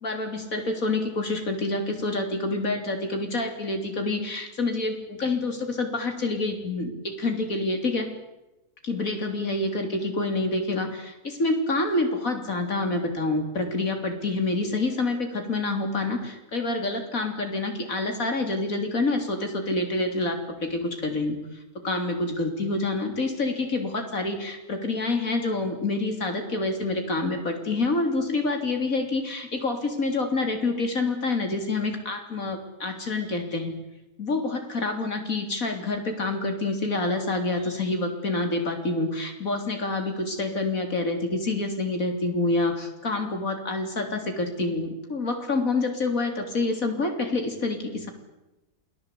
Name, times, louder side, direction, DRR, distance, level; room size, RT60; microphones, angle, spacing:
voice 1, 0.0-8.1 8.8-21.4 21.8-33.8 34.2-48.1, left 2 dB, 60° left, 5 dB, 3.8 m, -27 dB
27.5 x 19.0 x 8.4 m, 1.0 s
omnidirectional pair, 1.6 m